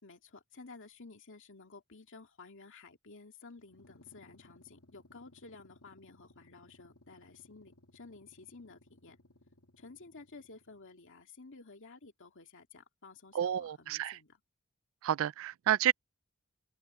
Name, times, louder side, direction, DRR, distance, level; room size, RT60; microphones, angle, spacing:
voice 1, 0.0-9.2 9.8-14.4, left 3 dB, 60° left, 2.4 m, -53 dB
sound 1, 3.6-10.9, left 2 dB, 90° left, 2.3 m, -62 dB
voice 2, 13.3-14.2 15.0-15.9, right 11 dB, 65° right, 0.3 m, -30 dB
open air
head